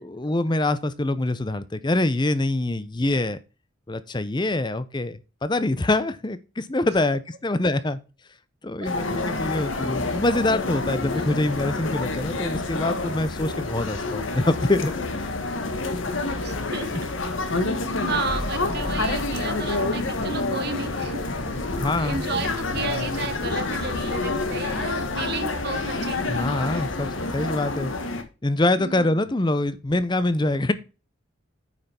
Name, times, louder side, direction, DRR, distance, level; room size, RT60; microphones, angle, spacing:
voice 1, 0.0-3.4 3.9-8.0 8.6-14.9 21.8-22.2 26.3-27.9 28.4-30.7, left 2 dB, 20° left, 14 dB, 0.6 m, -25 dB
sound 1, 8.8-28.2, left 2 dB, 65° left, 1.3 m, -28 dB
voice 2, 16.4-17.1 18.1-21.6 22.0-26.5 26.7-26.8 28.8-29.2, right 4 dB, 50° right, 7 dB, 1.3 m, -33 dB
9.3 x 5.6 x 4.3 m, 0.31 s
head